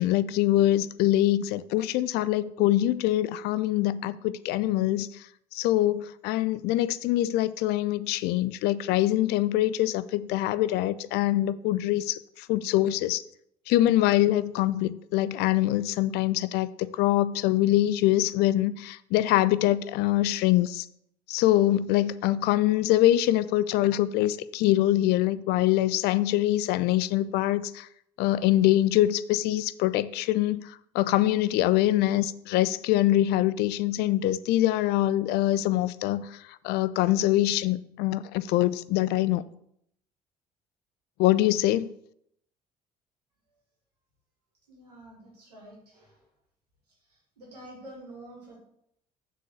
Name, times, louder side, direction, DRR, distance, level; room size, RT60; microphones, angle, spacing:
voice 1, 0.0-5.3 5.5-13.2 13.7-20.9 21.3-27.9 28.2-39.4 41.2-41.9, left 14 dB, 55° left, 0.4 m, -24 dB
voice 2, 44.7-46.2 47.4-48.6, right 1 dB, 80° right, 2.0 m, -47 dB
6.6 x 3.9 x 6.4 m
figure-of-eight pair, 50°, 20 cm